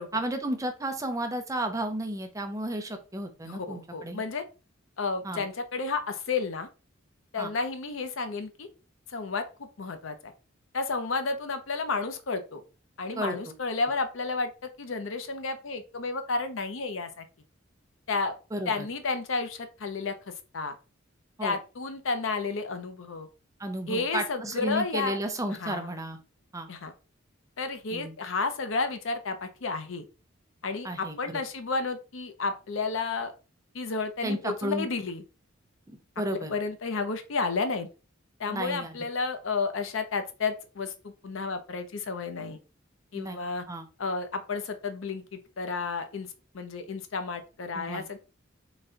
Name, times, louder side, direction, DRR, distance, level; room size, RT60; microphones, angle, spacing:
voice 1, 0.1-4.2 5.2-5.4 7.4-7.5 13.2-13.5 18.5-18.8 21.4-21.6 23.6-26.2 26.5-26.7 27.9-28.1 30.8-31.4 34.2-34.9 35.9-36.5 38.5-39.0 43.1-43.4 43.7-43.9 47.7-48.0, right 1 dB, 15° right, 6 dB, 0.6 m, -33 dB
voice 2, 3.4-4.4 5.0-6.7 7.3-8.7 9.1-10.3 10.7-12.6 13.0-17.2 18.1-18.3 18.7-20.7 21.4-23.3 23.9-25.2 25.5-25.9 26.7-26.9 27.6-30.1 30.6-33.3 33.7-35.2 36.5-37.9 38.4-42.6 43.1-43.6 44.0-46.3 46.5-48.2, left 4 dB, 75° left, 9 dB, 0.6 m, -32 dB
4.0 x 2.2 x 3.8 m, 0.33 s
head